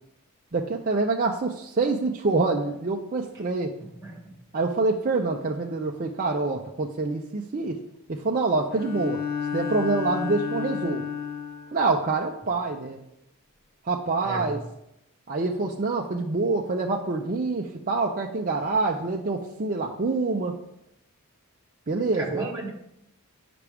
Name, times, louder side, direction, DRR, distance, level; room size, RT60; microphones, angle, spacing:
voice 1, 0.5-3.7 4.5-7.8 8.1-9.2 9.5-11.0 11.7-13.0 13.9-14.6 15.3-20.6 21.9-22.5, right 3 dB, 40° right, 0 dB, 0.5 m, -26 dB
voice 2, 3.8-4.2 14.2-14.6 22.1-22.7, right 2 dB, 15° right, -2 dB, 1.7 m, -34 dB
Bowed string instrument, 8.7-11.8, left 7 dB, 45° left, 0.7 m, -31 dB
9.7 x 5.9 x 3.5 m, 0.81 s
head